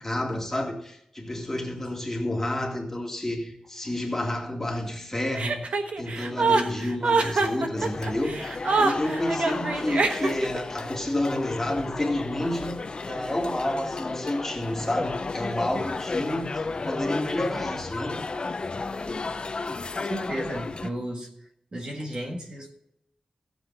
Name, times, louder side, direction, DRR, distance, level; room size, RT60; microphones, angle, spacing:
voice 1, 0.0-5.7 6.0-12.8 13.1-18.2, left 1 dB, 15° left, 2.2 m, -30 dB
Chuckle chortle, 5.3-10.6, right 4 dB, 75° right, 1.2 m, -25 dB
sound 1, 7.7-20.9, left 3 dB, 45° left, 0.7 m, -33 dB
voice 2, 20.0-21.3 21.7-22.7, right 1 dB, 45° right, 1.6 m, -33 dB
15.5 x 7.9 x 4.1 m
wide cardioid pair, 120°, 2 cm